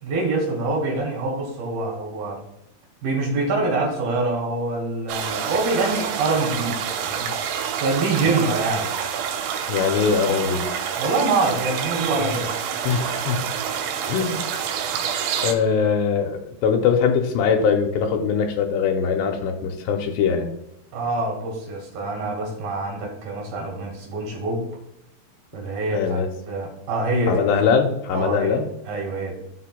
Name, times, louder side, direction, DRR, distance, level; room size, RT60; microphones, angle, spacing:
voice 1, 0.0-2.4 3.0-7.3 7.8-8.9 11.0-12.5 20.9-24.6 25.5-26.2 26.5-27.4 28.1-28.6 28.9-29.3, right 3 dB, 65° right, -1 dB, 3.2 m, -25 dB
sound 1, 5.1-15.5, right 8 dB, 85° right, 3.2 m, -27 dB
voice 2, 9.7-10.6 12.2-12.4 12.8-13.4 14.1-14.4 15.4-20.5 25.9-26.3 27.3-28.7, left 6 dB, 80° left, 4 dB, 2.7 m, -22 dB
14.0 x 5.2 x 2.2 m, 0.84 s
omnidirectional pair, 5.2 m